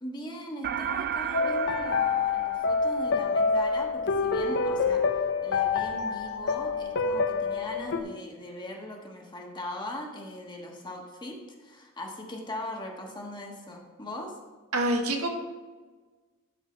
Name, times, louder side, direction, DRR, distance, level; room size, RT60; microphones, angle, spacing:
voice 1, 0.0-5.0 5.4-14.4, left 1 dB, 20° left, 0 dB, 1.4 m, -40 dB
sound 1, 0.6-3.3, right 9 dB, 45° right, 0.3 m, -34 dB
sound 2, 1.3-8.0, left 4 dB, 55° left, 0.7 m, -27 dB
voice 2, 14.7-15.3, right 1 dB, 75° right, 3 dB, 1.4 m, -26 dB
12.5 x 4.7 x 4.4 m, 1.3 s
head